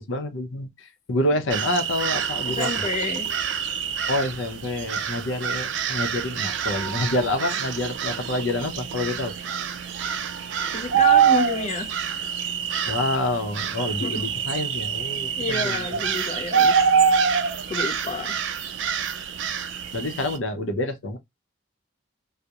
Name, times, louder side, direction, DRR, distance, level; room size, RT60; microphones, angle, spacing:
voice 1, 0.0-2.7 4.1-9.3 12.9-16.1 19.9-21.2, left 1 dB, 75° left, 0.6 m, -27 dB
sound 1, 1.5-20.4, right 7 dB, 65° right, 0.3 m, -25 dB
voice 2, 2.5-3.3 10.6-12.0 14.0-14.3 15.4-16.8 17.7-18.3, left 3 dB, 35° left, 0.4 m, -29 dB
2.3 x 2.0 x 2.7 m
head